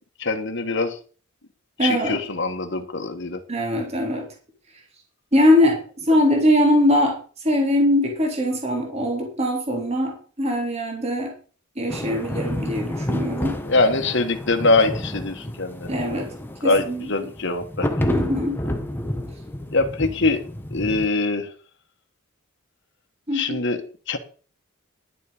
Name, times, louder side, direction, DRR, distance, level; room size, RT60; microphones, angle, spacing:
voice 1, 0.2-1.0 1.8-3.4 13.4-15.9 16.6-18.1 19.7-20.4 20.7-21.5 23.3-23.8 24.1-24.2, left 3 dB, 55° left, 5 dB, 1.6 m, -23 dB
voice 2, 1.8-2.2 3.5-4.3 5.3-7.1 7.4-11.3 11.8-13.6 15.9-16.3 16.6-17.1 18.1-18.6 23.3-23.6, left 1 dB, 30° right, 1 dB, 3.5 m, -21 dB
sound 1, 11.9-21.1, left 1 dB, 10° left, 1.2 m, -30 dB
11.5 x 9.9 x 5.1 m, 0.39 s
head